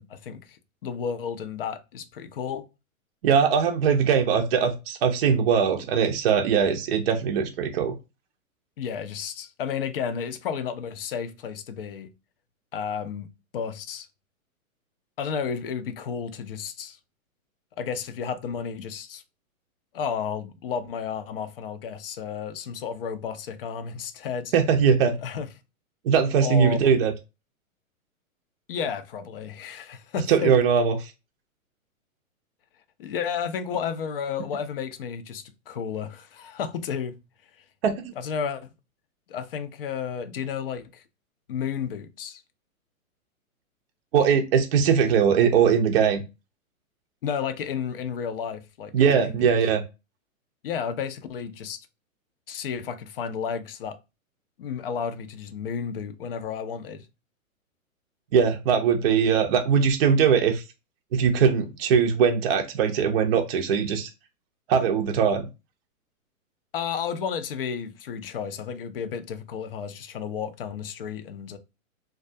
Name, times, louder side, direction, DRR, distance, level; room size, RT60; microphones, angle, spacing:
voice 1, 0.0-2.7 8.8-12.1 12.7-14.1 15.2-17.0 17.8-19.2 19.9-24.5 25.2-25.5 26.4-26.9 28.7-30.6 33.0-37.2 38.2-38.7 39.3-41.0 41.5-42.4 47.2-49.5 50.6-51.8 52.5-54.0 54.6-57.1 66.7-71.6, left 7 dB, 45° left, 0.4 m, -32 dB
voice 2, 3.2-7.9 24.5-25.1 26.1-27.1 30.3-30.9 37.8-38.1 44.1-46.2 48.9-49.8 58.3-60.6 61.1-64.1 64.7-65.5, right 7 dB, 45° right, 0.5 m, -21 dB
2.3 x 2.2 x 2.5 m
hypercardioid pair, 135°, 42 cm